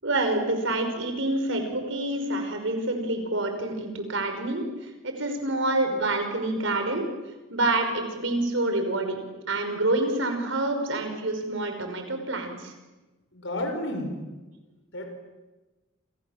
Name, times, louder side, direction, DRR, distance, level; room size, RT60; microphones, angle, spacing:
voice 1, 0.0-4.7 5.0-7.1 7.5-9.2 9.5-12.7, right 2 dB, 65° right, 6 dB, 5.5 m, -27 dB
voice 2, 13.3-14.2 14.9-15.1, left 1 dB, 65° left, 4 dB, 5.7 m, -31 dB
28.0 x 28.0 x 7.4 m, 1.1 s
head